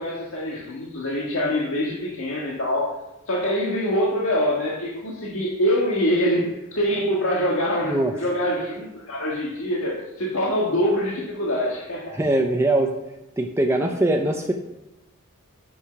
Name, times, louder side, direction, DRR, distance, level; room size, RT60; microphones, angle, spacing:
voice 1, 0.0-3.0 3.3-6.5 6.7-12.2, equal, 65° left, -3 dB, 1.7 m, -24 dB
voice 2, 12.1-12.9 13.4-14.5, right 1 dB, 10° right, 2 dB, 0.6 m, -21 dB
8.6 x 6.6 x 5.7 m, 0.94 s
head